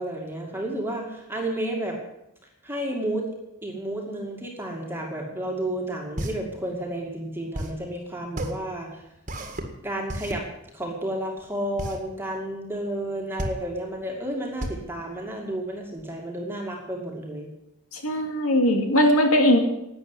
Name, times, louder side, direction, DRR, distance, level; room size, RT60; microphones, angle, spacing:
voice 1, 0.0-2.0 2.6-3.3 3.6-9.0 9.8-10.5 10.7-17.5, right 1 dB, 10° right, 0 dB, 2.3 m, -31 dB
sound 1, 5.7-16.0, right 1 dB, 35° right, 1.9 m, -35 dB
voice 2, 17.9-19.6, equal, 70° left, 4 dB, 2.6 m, -20 dB
12.0 x 8.9 x 9.9 m, 0.86 s
head